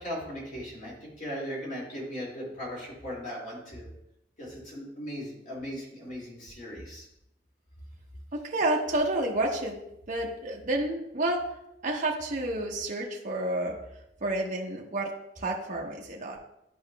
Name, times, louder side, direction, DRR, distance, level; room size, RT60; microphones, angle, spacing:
voice 1, 0.0-3.9 4.4-7.1, equal, 45° left, -4 dB, 2.3 m, -38 dB
voice 2, 8.4-9.7 10.1-11.4 11.8-13.8 14.2-15.1 15.4-16.4, right 1 dB, 45° right, -1 dB, 0.9 m, -29 dB
11.0 x 4.9 x 2.2 m, 0.83 s
head